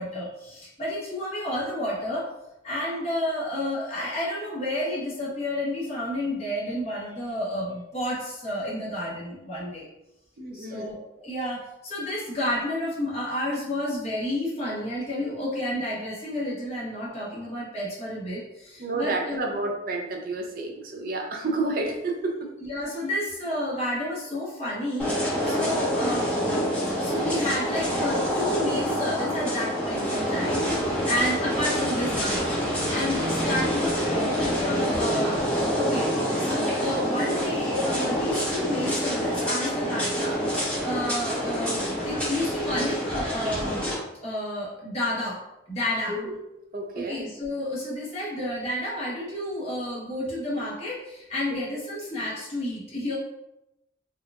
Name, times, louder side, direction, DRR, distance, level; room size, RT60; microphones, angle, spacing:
voice 1, 0.0-2.3 2.6-9.9 10.5-19.5 22.7-26.3 27.0-32.6 32.9-36.1 36.4-43.9 44.2-45.4 45.7-46.2 46.9-53.2, left 1 dB, 35° left, -6 dB, 1.1 m, -30 dB
voice 2, 10.4-11.0 18.8-22.5 25.5-25.8 46.1-46.4 46.7-47.2 51.5-51.6, right 2 dB, 45° right, 2 dB, 0.5 m, -30 dB
sound 1, 25.0-43.9, equal, 5° left, 1.1 m, -27 dB
4.4 x 2.3 x 2.4 m, 0.89 s
head